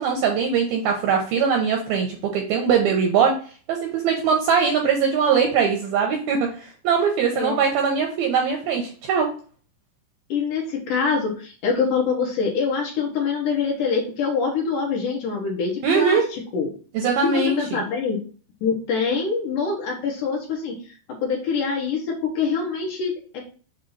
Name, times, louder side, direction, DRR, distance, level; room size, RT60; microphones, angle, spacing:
voice 1, 0.0-3.3 3.7-9.3 15.8-16.2 16.9-17.8, right 6 dB, 80° right, 1 dB, 2.2 m, -21 dB
voice 2, 10.3-16.7 17.0-18.2 18.6-21.0 21.2-23.4, left 5 dB, 70° left, 0 dB, 2.0 m, -25 dB
7.4 x 2.7 x 5.5 m, 0.40 s
omnidirectional pair, 5.3 m